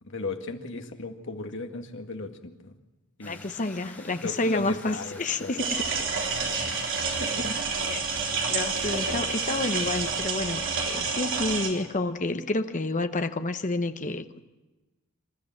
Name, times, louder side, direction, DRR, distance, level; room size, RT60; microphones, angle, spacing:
voice 1, 0.0-2.7 3.2-3.4 4.2-5.5, left 3 dB, 60° left, 4 dB, 1.9 m, -36 dB
voice 2, 3.2-5.8 6.6-6.7 7.2-7.6 7.9-8.0 8.5-14.4, left 2 dB, 35° left, 9 dB, 1.0 m, -30 dB
sound 1, 3.2-10.2, left 2 dB, 10° left, 5.1 m, -48 dB
sound 2, 5.6-11.7, right 4 dB, 60° right, 3.8 m, -29 dB
26.5 x 13.5 x 7.3 m, 1.1 s
head